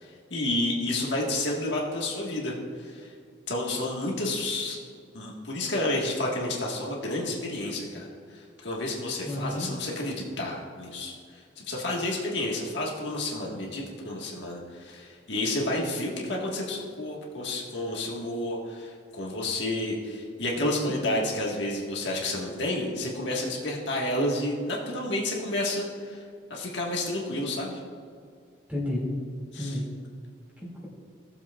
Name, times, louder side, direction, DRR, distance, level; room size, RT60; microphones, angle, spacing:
voice 1, 0.0-3.1 3.5-4.8 5.1-26.2 26.5-27.8 29.5-29.8, left 1 dB, 65° left, -2 dB, 1.5 m, -30 dB
voice 2, 9.2-9.7 20.6-20.9 28.7-29.1 29.5-29.9 30.6-30.9, left 1 dB, 10° right, -5 dB, 2.2 m, -32 dB
16.5 x 7.3 x 2.4 m, 2.1 s
head